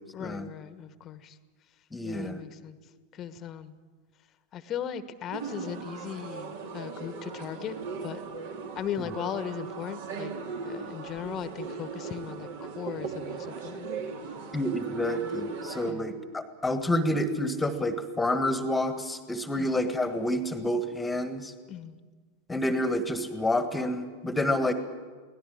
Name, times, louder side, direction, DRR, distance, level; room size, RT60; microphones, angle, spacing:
voice 1, 0.1-1.3 2.0-2.8 3.2-3.7 4.5-8.2 8.7-10.3 10.6-12.5 12.8-13.9 15.9-16.1 19.6-19.7 21.7-22.0, left 9 dB, 30° left, 13 dB, 1.2 m, -37 dB
voice 2, 1.9-2.4 9.0-9.1 14.5-21.5 22.5-24.7, left 1 dB, 10° left, 10 dB, 1.6 m, -29 dB
sound 1, 5.3-15.9, right 4 dB, 55° right, 2.3 m, -38 dB
24.0 x 17.5 x 8.6 m, 1.5 s
figure-of-eight pair, 90°, 0 cm